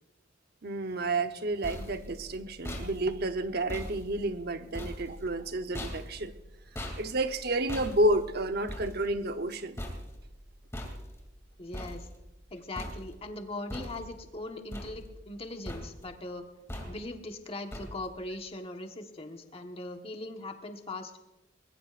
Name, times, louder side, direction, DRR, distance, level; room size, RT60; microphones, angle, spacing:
voice 1, 0.6-6.3 7.0-9.8, right 1 dB, 60° right, 8 dB, 0.9 m, -30 dB
sound 1, 1.3-12.5 12.7-13.4 13.7-14.3 14.7-15.4 15.6-16.2 16.7-17.2 17.7-18.2, equal, 15° left, 2.7 m, -42 dB
voice 2, 11.6-12.1 12.5-16.4 16.9-21.2, left 2 dB, 30° left, 4 dB, 1.4 m, -40 dB
21.5 x 21.5 x 2.5 m, 0.98 s
head